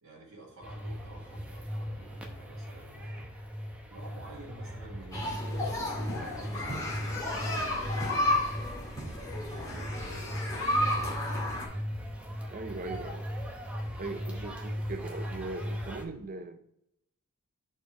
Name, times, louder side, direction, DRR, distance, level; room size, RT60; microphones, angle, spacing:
voice 1, 0.0-3.3 3.9-5.6 6.1-8.7 9.4-11.3, right 1 dB, 70° right, 1.9 m, -51 dB
sound 1, 0.6-16.0, equal, 5° right, 0.7 m, -38 dB
sound 2, 5.1-11.7, left 1 dB, 15° left, 1.6 m, -32 dB
voice 2, 12.5-13.3 14.0-16.6, right 3 dB, 40° right, 0.4 m, -39 dB
5.1 x 4.3 x 5.9 m
head